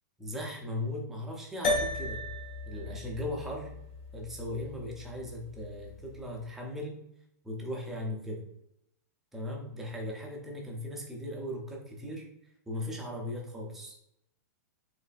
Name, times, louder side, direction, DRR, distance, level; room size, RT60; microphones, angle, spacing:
voice 1, 0.2-2.2 2.7-3.7 4.1-7.0 7.4-8.4 9.3-12.2 12.7-14.0, left 1 dB, 5° right, -1 dB, 0.4 m, -38 dB
sound 1, 1.6-6.2, left 1 dB, 40° left, 1.4 m, -36 dB
4.0 x 3.1 x 2.3 m, 0.78 s
supercardioid pair, 175°, 9 cm